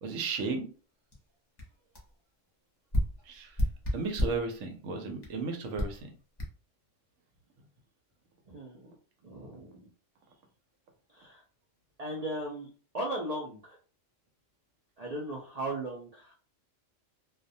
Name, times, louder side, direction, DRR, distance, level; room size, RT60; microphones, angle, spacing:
voice 1, 0.0-0.7 3.3-3.5 3.9-6.1, right 4 dB, 85° right, 4 dB, 1.0 m, -34 dB
sound 1, 1.1-1.2 1.6-1.7 1.9-2.1 2.9-4.5 5.2-5.4 5.8-6.0 6.4-6.5, left 1 dB, 30° left, 0.5 m, -31 dB
voice 2, 8.5-8.9 9.2-9.9 11.1-11.4 12.0-12.7 12.9-13.8 15.0-16.3, right 1 dB, 60° right, -3 dB, 0.4 m, -37 dB
2.3 x 2.1 x 2.6 m, 0.39 s
omnidirectional pair, 1.3 m